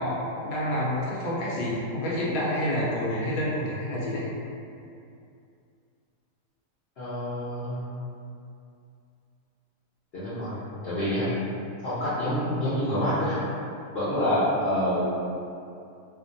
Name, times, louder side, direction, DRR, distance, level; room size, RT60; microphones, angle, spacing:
voice 1, 0.0-4.2, equal, 80° left, -6 dB, 1.2 m, -28 dB
voice 2, 7.0-7.8 10.1-10.6 10.8-11.3 11.8-13.4 13.9-15.0, equal, 55° left, -11 dB, 0.7 m, -27 dB
3.0 x 2.1 x 2.5 m, 2.5 s
omnidirectional pair, 1.7 m